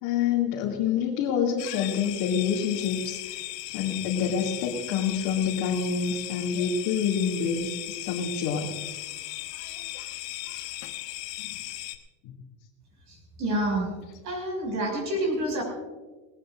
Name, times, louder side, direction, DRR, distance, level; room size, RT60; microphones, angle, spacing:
voice 1, 0.0-3.2 3.7-8.7 11.4-11.8 12.2-12.3, left 7 dB, 60° left, -4 dB, 2.6 m, -27 dB
sound 1, 1.6-12.0, left 16 dB, 75° left, 1.5 m, -37 dB
voice 2, 13.1-13.9 14.2-15.6, right 1 dB, 35° right, 0 dB, 6.2 m, -28 dB
19.5 x 19.5 x 2.5 m, 1.2 s
supercardioid pair, 160°, 48 cm